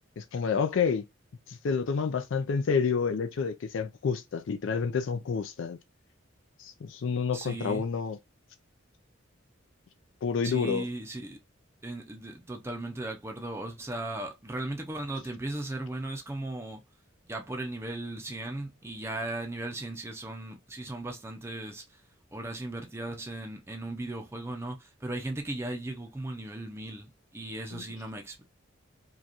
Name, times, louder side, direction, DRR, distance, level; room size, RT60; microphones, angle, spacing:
voice 1, 0.2-1.1 1.5-5.8 6.6-8.2 10.2-10.9 27.7-27.8, left 5 dB, 70° left, 0.4 m, -29 dB
voice 2, 7.3-7.8 10.4-11.4 11.8-16.8 17.3-22.0 22.3-28.4, right 2 dB, 15° right, 0.5 m, -37 dB
4.9 x 2.3 x 2.8 m
head